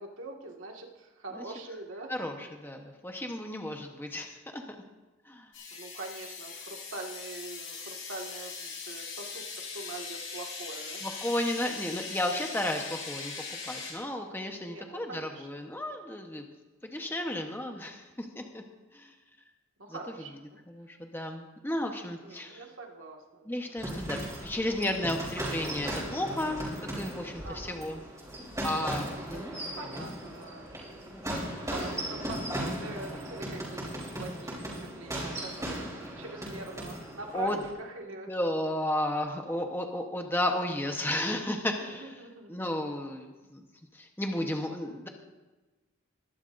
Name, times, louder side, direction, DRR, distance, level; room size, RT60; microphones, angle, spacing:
voice 1, 0.0-2.4 5.7-9.4 9.7-11.0 14.7-15.5 19.8-20.6 22.2-23.8 27.4-27.8 29.3-30.8 31.7-38.3 41.8-42.6, right 3 dB, 70° right, 1 dB, 1.8 m, -44 dB
voice 2, 2.1-4.6 5.3-5.5 11.0-16.4 16.8-18.6 18.9-19.1 19.9-20.0 20.7-22.6 23.5-28.0 28.6-29.6 29.9-30.1 31.1-31.6 37.3-37.6 38.3-42.1 42.5-43.6 43.9-45.1, left 1 dB, 10° left, 3 dB, 1.0 m, -33 dB
sound 1, 5.5-13.9, left 5 dB, 65° left, 4.5 m, -40 dB
sound 2, 23.8-37.7, right 1 dB, 15° right, 3.5 m, -37 dB
22.0 x 11.5 x 2.6 m, 1.2 s
head